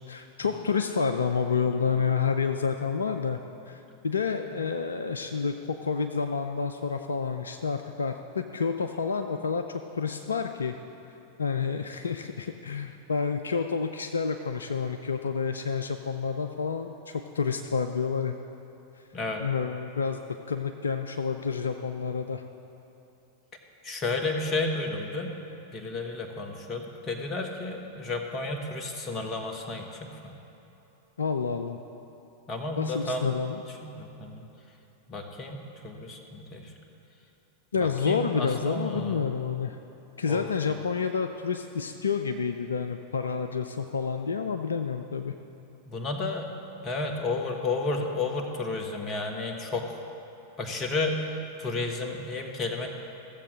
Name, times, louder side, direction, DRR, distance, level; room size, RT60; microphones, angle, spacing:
voice 1, 0.0-3.4 3.7-10.7 11.4-18.3 19.4-22.4 31.2-31.8 32.8-33.6 37.7-39.8 40.2-45.3, left 5 dB, 70° left, 7 dB, 0.4 m, -29 dB
voice 2, 19.1-19.4 23.8-25.4 25.7-30.3 32.5-33.5 33.8-34.4 35.1-36.7 37.8-39.3 40.3-40.8 45.9-46.5 46.8-50.0 50.6-51.3 51.6-52.9, left 3 dB, 30° left, 3 dB, 1.4 m, -32 dB
15.5 x 7.4 x 6.4 m, 2.9 s
figure-of-eight pair, 90°, 0 cm